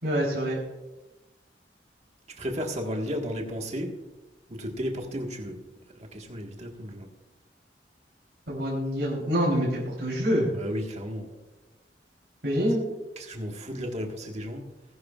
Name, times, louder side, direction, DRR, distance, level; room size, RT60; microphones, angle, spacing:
voice 1, 0.0-0.6 8.5-10.5 12.4-12.8, equal, 75° right, -5 dB, 3.6 m, -26 dB
voice 2, 2.4-4.0 4.5-5.6 6.0-7.1 10.5-11.3 13.2-14.7, equal, 40° right, 2 dB, 1.7 m, -34 dB
19.5 x 11.0 x 2.5 m, 1.1 s
head